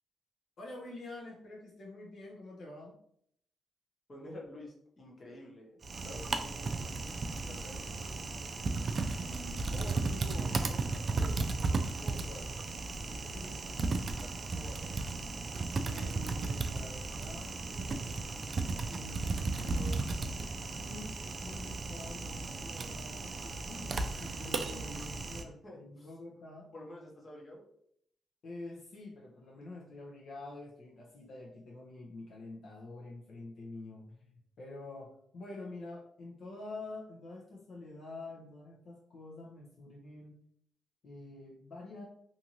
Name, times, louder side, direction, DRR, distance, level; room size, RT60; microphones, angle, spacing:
voice 1, 0.6-3.0 13.3-13.5 15.7-18.2 18.8-21.1 21.4-26.7 28.4-40.4 41.0-42.0, left 2 dB, 60° left, -2 dB, 0.7 m, -47 dB
voice 2, 4.1-6.9 7.4-8.4 9.2-12.7 13.1-13.5 14.2-15.0 25.6-26.1 26.7-27.6, equal, 30° left, -3 dB, 0.9 m, -49 dB
Typing, 5.8-25.4, right 3 dB, 45° right, 0.3 m, -35 dB
2.6 x 2.5 x 2.9 m, 0.68 s
cardioid pair, 95°, 0 cm